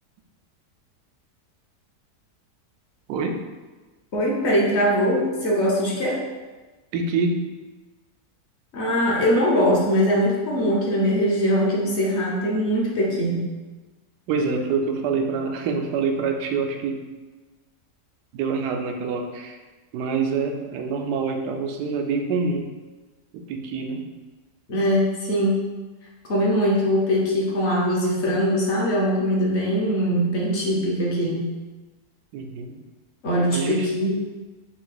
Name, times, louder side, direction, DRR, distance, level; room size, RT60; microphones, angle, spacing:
voice 1, 3.1-3.4 6.9-7.4 14.3-17.0 18.3-19.6 19.9-22.7 23.3-24.1 32.3-32.8 33.5-33.9, right 4 dB, 90° right, 4 dB, 1.1 m, -26 dB
voice 2, 4.1-6.2 8.7-13.6 24.7-25.6 26.3-31.6 33.2-34.1, equal, 50° left, -3 dB, 1.0 m, -22 dB
4.5 x 2.5 x 3.9 m, 1.2 s
omnidirectional pair, 1.7 m